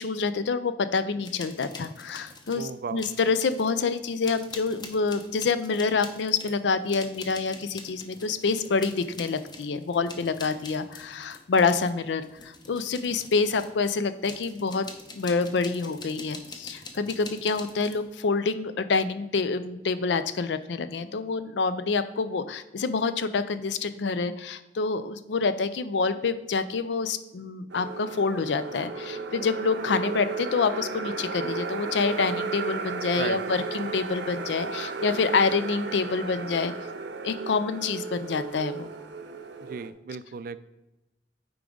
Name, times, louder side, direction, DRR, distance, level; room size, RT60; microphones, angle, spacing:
voice 1, 0.0-14.9 15.1-36.7 37.2-38.9, left 4 dB, 85° left, 12 dB, 0.5 m, -27 dB
sound 1, 1.2-2.7 3.0-3.8 4.2-13.8 14.3-18.1, left 3 dB, 25° left, 0.7 m, -45 dB
voice 2, 2.5-3.1 33.1-33.4 39.6-40.7, right 5 dB, 50° right, 15 dB, 0.3 m, -35 dB
sound 2, 27.7-39.9, right 4 dB, 90° right, 0.7 m, -34 dB
8.5 x 4.8 x 3.8 m, 0.99 s
head